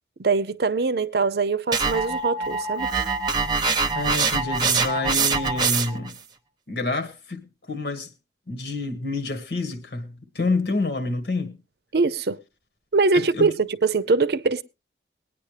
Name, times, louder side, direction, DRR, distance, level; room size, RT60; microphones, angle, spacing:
voice 1, 0.2-2.9 11.9-12.4 12.9-14.6, right 4 dB, 65° right, 0.6 m, -22 dB
sound 1, 1.7-6.1, right 4 dB, 25° right, 0.8 m, -24 dB
voice 2, 3.9-6.1 6.7-8.1 8.5-11.6 13.1-13.5, left 3 dB, 75° left, 1.7 m, -28 dB
21.0 x 9.6 x 3.3 m
head